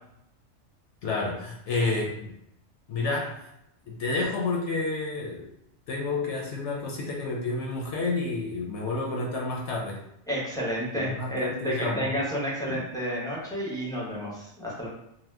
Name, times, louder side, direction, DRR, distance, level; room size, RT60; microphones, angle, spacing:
voice 1, 1.0-2.3 2.9-3.5 3.9-5.5 5.9-10.0 11.0-12.1 12.7-12.8, left 3 dB, 75° left, -2 dB, 0.9 m, -30 dB
voice 2, 10.3-14.9, equal, 5° left, -5 dB, 0.6 m, -31 dB
2.8 x 2.1 x 3.4 m, 0.79 s
omnidirectional pair, 1.3 m